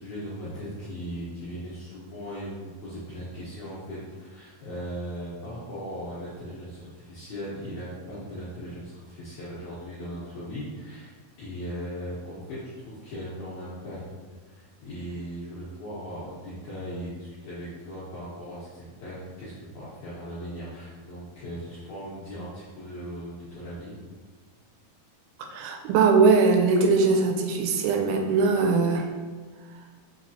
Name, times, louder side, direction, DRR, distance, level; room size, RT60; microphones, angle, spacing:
voice 1, 0.0-14.0 14.4-24.0, equal, 75° left, -10 dB, 1.7 m, -38 dB
voice 2, 25.5-29.1, right 4 dB, 90° right, 3 dB, 2.7 m, -21 dB
5.6 x 3.2 x 2.6 m, 1.4 s
omnidirectional pair, 4.6 m